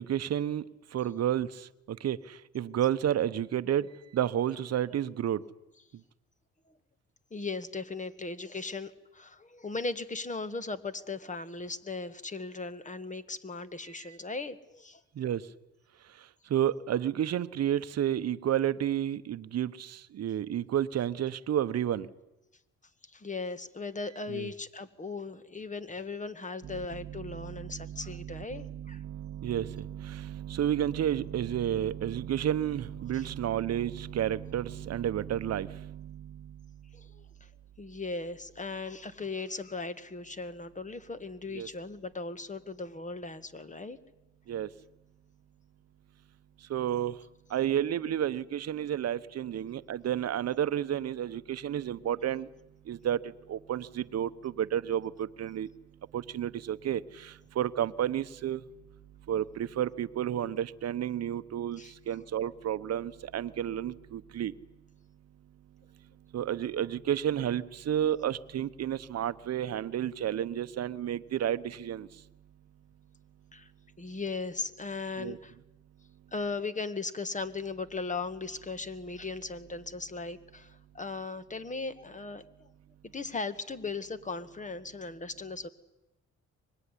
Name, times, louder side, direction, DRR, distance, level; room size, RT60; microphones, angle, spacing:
voice 1, 0.0-5.4 14.0-14.1 15.1-15.5 16.1-22.1 24.3-24.5 26.6-36.9 41.5-41.7 44.5-44.7 46.6-47.2 47.5-52.5 52.8-55.7 56.1-58.6 59.3-64.5 66.3-72.2 75.2-75.4, right 10 dB, 55° right, 1.0 m, -31 dB
voice 2, 7.3-15.0 23.0-29.0 33.1-33.3 36.9-37.5 37.8-44.0 61.8-61.9 73.5-73.7 74.0-75.5 76.3-82.7 83.0-85.7, left 3 dB, 25° left, 1.8 m, -38 dB
24.5 x 21.0 x 10.0 m
cardioid pair, 90°, 30 cm